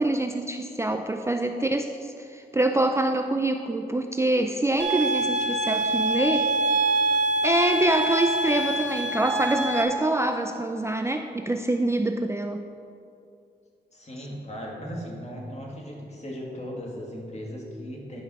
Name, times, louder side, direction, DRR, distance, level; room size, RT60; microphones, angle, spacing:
voice 1, 0.0-6.5 7.4-12.7, right 2 dB, 15° right, 5 dB, 0.4 m, -25 dB
sound 1, 4.8-9.8, right 2 dB, 90° right, 1.1 m, -25 dB
voice 2, 13.9-18.2, equal, 40° left, -2 dB, 2.3 m, -37 dB
11.0 x 5.5 x 6.3 m, 2.5 s
wide cardioid pair, 80°, 18 cm